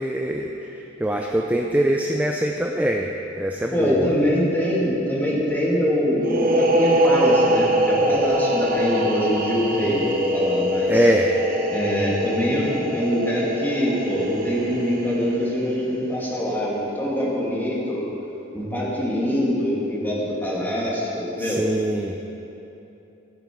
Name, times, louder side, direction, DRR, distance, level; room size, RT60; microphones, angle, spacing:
voice 1, 0.0-4.1 10.9-11.3 21.4-22.2, right 1 dB, 10° right, 1 dB, 0.5 m, -23 dB
voice 2, 3.7-11.0 11.7-18.0 18.5-21.7, equal, 10° left, -6 dB, 2.4 m, -24 dB
sound 1, 6.2-15.7, equal, 45° right, 0.9 m, -23 dB
15.5 x 8.9 x 4.6 m, 3.0 s
head